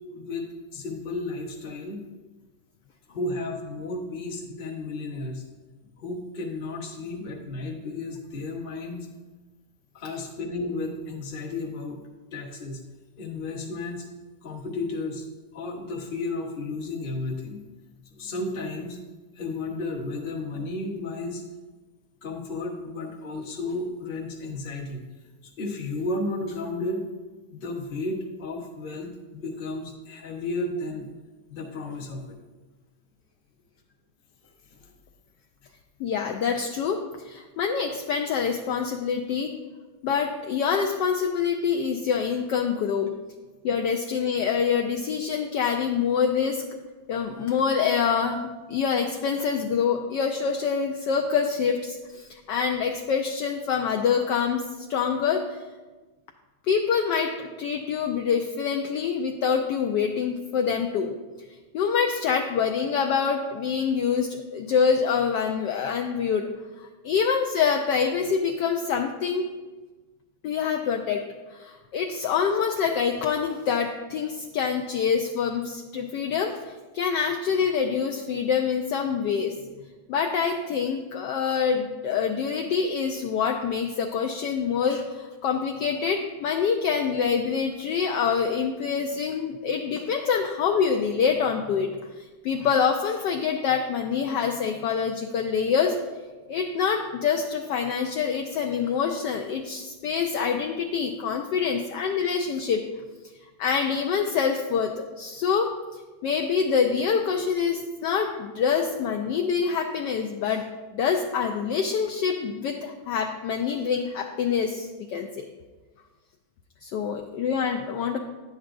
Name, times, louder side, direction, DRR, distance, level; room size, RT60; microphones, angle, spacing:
voice 1, 0.1-2.0 3.1-5.4 6.0-9.1 9.9-12.0 12.3-12.8 13.2-14.0 14.4-15.2 15.5-17.6 18.1-19.0 19.3-21.4 22.2-25.0 25.6-27.0 27.5-31.1 31.5-32.4 34.7-34.8, left 2 dB, 35° left, -1 dB, 0.9 m, -33 dB
voice 2, 36.0-39.5 40.0-43.1 43.6-46.6 47.1-55.4 56.7-61.1 61.7-66.5 66.8-69.5 70.4-71.2 71.5-76.6 76.9-79.6 80.1-91.9 92.4-96.0 96.5-102.8 103.6-105.7 106.2-110.6 110.9-115.5 116.8-118.2, left 6 dB, 75° left, 3 dB, 1.1 m, -26 dB
10.5 x 8.0 x 2.5 m, 1.3 s
omnidirectional pair, 2.2 m